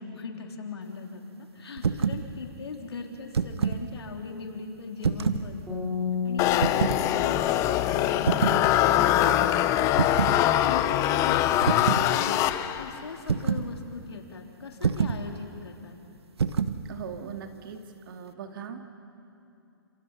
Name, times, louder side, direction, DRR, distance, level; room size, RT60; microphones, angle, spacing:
voice 1, 0.0-5.9 6.2-8.7 9.1-10.1 10.5-16.0, left 4 dB, 85° left, 2 dB, 3.7 m, -40 dB
sound 1, 1.8-2.2 3.1-3.8 5.0-5.5 6.6-7.0 8.3-8.6 10.0-10.4 11.6-12.1 13.3-13.7 14.8-15.2 16.4-16.8, right 6 dB, 85° right, 1.2 m, -26 dB
sound 2, 5.7-8.9, left 6 dB, 5° right, 5.1 m, -34 dB
sound 3, 6.4-13.0, left 13 dB, 25° left, 0.8 m, -23 dB
voice 2, 16.9-18.9, right 7 dB, 60° right, 5 dB, 2.6 m, -40 dB
30.0 x 27.5 x 5.6 m, 2.7 s
hypercardioid pair, 140°, 13 cm